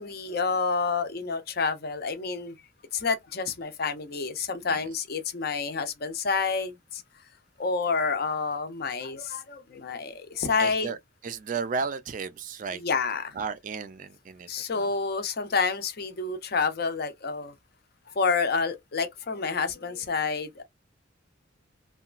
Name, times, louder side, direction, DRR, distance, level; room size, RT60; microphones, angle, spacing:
voice 1, 0.0-2.5 2.9-7.0 7.6-10.9 12.7-13.3 14.5-17.5 18.2-20.6, left 4 dB, 50° left, 0.5 m, -29 dB
voice 2, 10.6-11.0 11.2-12.8 13.3-14.9, right 5 dB, 40° right, 0.3 m, -34 dB
2.8 x 2.3 x 2.4 m
head